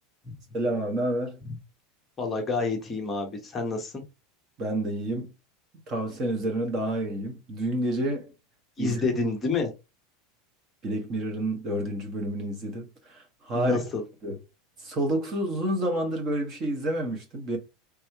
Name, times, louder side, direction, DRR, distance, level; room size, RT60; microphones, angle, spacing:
voice 1, 0.5-1.4 4.6-5.3 5.9-8.3 8.8-9.0 10.8-13.9 14.2-14.4 14.8-17.6, right 1 dB, 25° right, 1.2 m, -29 dB
voice 2, 2.2-3.9 8.8-9.7 13.5-14.0, left 3 dB, 15° left, 0.9 m, -28 dB
3.4 x 3.3 x 4.5 m
supercardioid pair, 165°, 0 cm